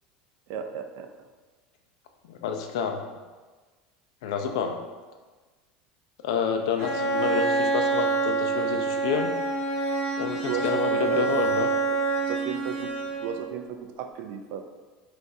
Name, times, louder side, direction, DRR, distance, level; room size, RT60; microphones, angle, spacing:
voice 1, 0.5-1.1 10.4-11.3 11.9-12.0 12.3-12.9 13.2-14.6, right 8 dB, 60° right, 6 dB, 0.4 m, -34 dB
voice 2, 2.2-3.0 4.2-4.8 6.2-9.3 10.2-11.7, left 6 dB, 85° left, 5 dB, 0.4 m, -29 dB
Bowed string instrument, 6.8-13.5, right 3 dB, 35° right, 1.5 m, -26 dB
5.8 x 2.5 x 2.6 m, 1.3 s
supercardioid pair, 150°, 3 cm